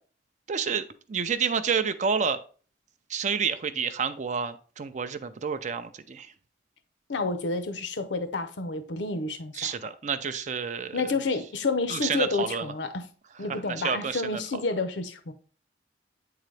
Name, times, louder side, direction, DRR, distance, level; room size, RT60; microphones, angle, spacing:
voice 1, 0.5-2.4 3.1-6.3 9.5-11.1 11.9-12.7 13.5-14.4, right 6 dB, 40° right, 0.4 m, -29 dB
voice 2, 7.1-9.7 10.9-13.0 13.4-15.3, left 3 dB, 75° left, 0.6 m, -29 dB
8.2 x 3.9 x 3.2 m
head